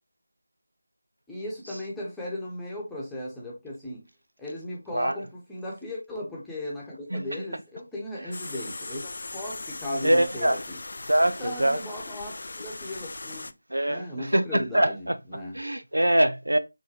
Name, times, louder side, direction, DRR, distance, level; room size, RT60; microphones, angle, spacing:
voice 1, 1.3-4.0 4.4-10.8 11.2-13.5 13.9-15.6, left 1 dB, 5° left, 1.1 m, -36 dB
voice 2, 4.9-5.3 7.1-7.4 8.2-8.3 10.0-10.6 11.1-11.8 13.7-15.2 15.5-16.6, right 1 dB, 80° right, 0.4 m, -24 dB
sound 1, 8.3-13.5, left 2 dB, 55° left, 0.3 m, -39 dB
4.8 x 3.8 x 2.8 m
figure-of-eight pair, 165°, 0 cm